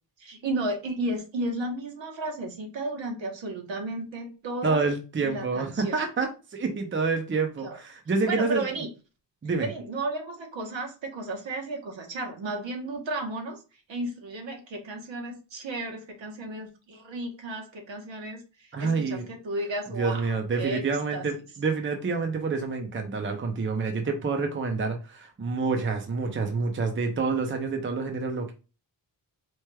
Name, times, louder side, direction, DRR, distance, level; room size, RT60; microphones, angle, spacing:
voice 1, 0.2-4.8 5.2-6.0 7.6-7.8 8.3-8.9 9.6-13.6 13.9-21.4, right 2 dB, 80° right, 3 dB, 1.1 m, -33 dB
voice 2, 4.6-8.6 9.4-9.7 18.7-19.2 20.0-28.5, right 4 dB, 30° right, 5 dB, 0.6 m, -28 dB
4.4 x 3.1 x 2.2 m, 0.32 s
wide cardioid pair, 175°, 44 cm